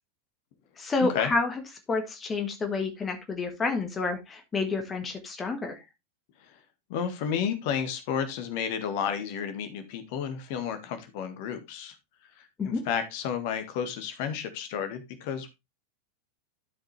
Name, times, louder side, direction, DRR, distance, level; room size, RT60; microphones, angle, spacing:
voice 1, 0.8-1.5 1.9-5.8 12.6-12.8, left 3 dB, 20° left, 5 dB, 1.4 m, -29 dB
voice 2, 6.9-11.9 12.4-15.5, left 7 dB, 50° left, 8 dB, 1.6 m, -32 dB
12.5 x 5.2 x 3.2 m, 0.23 s
figure-of-eight pair, 90°, 0 cm